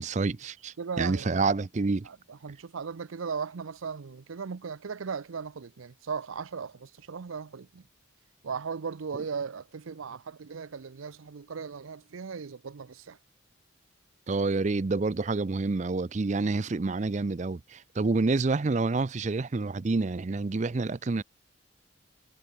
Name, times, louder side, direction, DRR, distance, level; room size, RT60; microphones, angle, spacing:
voice 1, 0.0-2.1 9.1-9.2 14.3-21.2, right 3 dB, 35° right, 0.4 m, -28 dB
voice 2, 0.8-1.4 2.0-7.8 8.4-13.2, right 5 dB, 85° right, 0.6 m, -37 dB
head